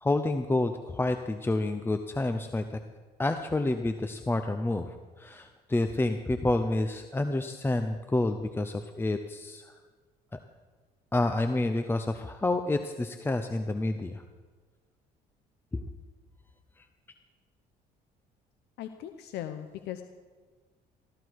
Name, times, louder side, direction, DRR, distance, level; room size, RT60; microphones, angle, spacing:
voice 1, 0.0-2.8 3.2-9.7 10.3-10.4 11.1-14.2 15.7-15.8, left 2 dB, 15° left, 7 dB, 0.7 m, -29 dB
voice 2, 18.8-20.0, left 11 dB, 80° left, 8 dB, 0.8 m, -38 dB
15.0 x 13.5 x 4.7 m, 1.4 s
cardioid pair, 110°, 17 cm